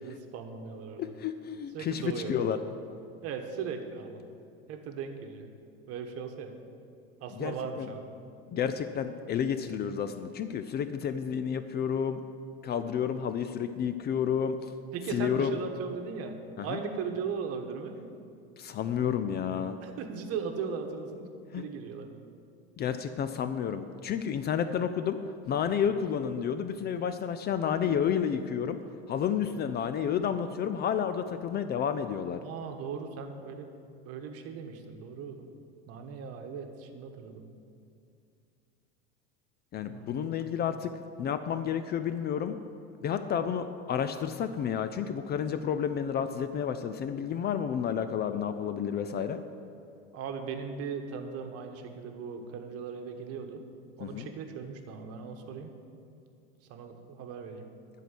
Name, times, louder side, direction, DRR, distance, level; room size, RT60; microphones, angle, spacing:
voice 1, 0.0-1.0 1.7-2.7 3.2-4.2 4.7-5.5 5.9-6.5 7.2-8.1 14.9-18.0 19.8-21.3 21.5-22.1 32.4-33.7 34.0-35.5 35.9-37.5 39.9-40.4 50.1-53.6 54.0-55.7 56.7-57.6, right 6 dB, 50° right, 6 dB, 1.2 m, -38 dB
voice 2, 1.0-2.6 7.4-7.9 8.5-12.2 12.6-14.7 15.1-15.6 16.6-16.8 18.6-19.8 21.5-21.6 22.8-25.2 25.5-28.8 29.1-32.4 39.7-40.9 41.2-42.6 43.0-49.4 54.0-54.3, left 8 dB, 30° left, 10 dB, 0.5 m, -30 dB
11.5 x 4.6 x 8.2 m, 2.5 s
hypercardioid pair, 95°, 32 cm